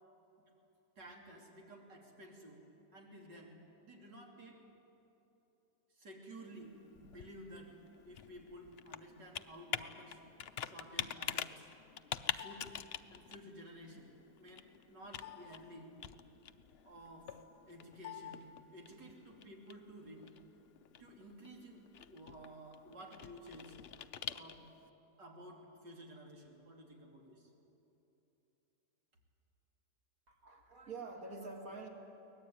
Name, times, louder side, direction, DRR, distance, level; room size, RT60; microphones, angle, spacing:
voice 1, 1.0-2.6 2.9-3.5 3.8-4.6 6.0-6.7 7.0-7.7 8.0-10.2 10.6-11.7 12.4-12.7 13.1-14.1 14.4-15.9 16.8-17.3 17.7-20.3 21.0-23.8 24.3-24.6 25.2-27.5, right 1 dB, 85° right, 0 dB, 3.7 m, -53 dB
Computer keyboard, 6.6-24.9, left 9 dB, 75° left, 0.5 m, -46 dB
voice 2, 30.3-31.9, right 3 dB, 55° right, 2 dB, 2.9 m, -46 dB
23.5 x 19.0 x 9.4 m, 3.0 s
omnidirectional pair, 1.8 m